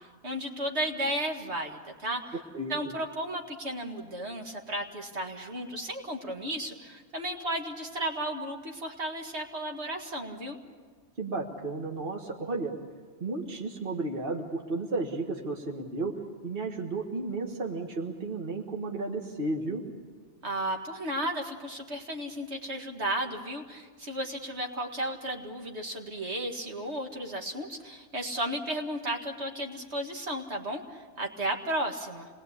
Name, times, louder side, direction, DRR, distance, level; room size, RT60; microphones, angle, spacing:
voice 1, 0.0-2.3 2.7-10.6 20.4-32.3, right 1 dB, 65° right, 2 dB, 2.3 m, -34 dB
voice 2, 11.2-12.7 13.2-16.1 16.4-19.8, right 3 dB, 50° right, 1 dB, 1.9 m, -33 dB
27.0 x 20.5 x 8.4 m, 1.5 s
omnidirectional pair, 1.2 m